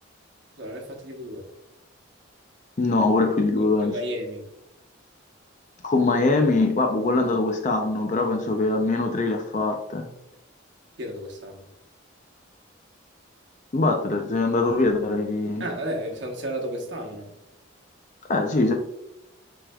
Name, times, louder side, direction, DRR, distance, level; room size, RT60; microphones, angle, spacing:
voice 1, 0.6-1.5 3.6-4.5 11.0-11.7 15.6-17.3, equal, 60° right, 1 dB, 1.0 m, -33 dB
voice 2, 2.8-4.0 5.8-10.1 13.7-15.7 18.3-18.7, left 3 dB, 35° left, 3 dB, 0.4 m, -22 dB
6.2 x 3.5 x 2.3 m, 0.84 s
head